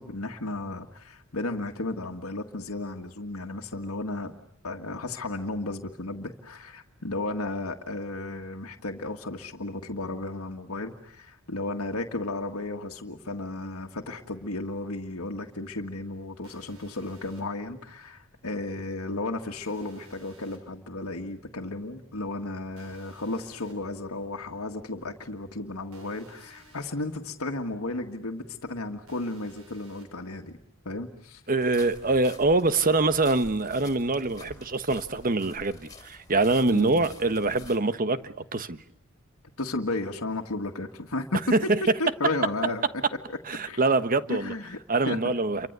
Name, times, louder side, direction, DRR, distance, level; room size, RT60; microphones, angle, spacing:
voice 1, 0.0-4.3 4.6-30.6 30.9-31.4 36.7-37.1 39.6-43.0 43.3-43.4 43.7-43.8 44.3-44.8 45.1-45.3, left 2 dB, 80° left, 2 dB, 1.8 m, -34 dB
sound 1, 16.4-17.4 19.6-20.6 22.8-23.7 25.9-26.9 29.1-30.1, right 2 dB, 75° right, 6.3 m, -56 dB
voice 2, 31.5-38.8 41.5-41.8 43.5-44.5 44.9-45.7, right 3 dB, 40° right, 12 dB, 1.3 m, -24 dB
sound 2, 31.6-37.8, left 2 dB, 20° left, 4.3 m, -48 dB
29.5 x 24.5 x 8.1 m, 0.70 s
head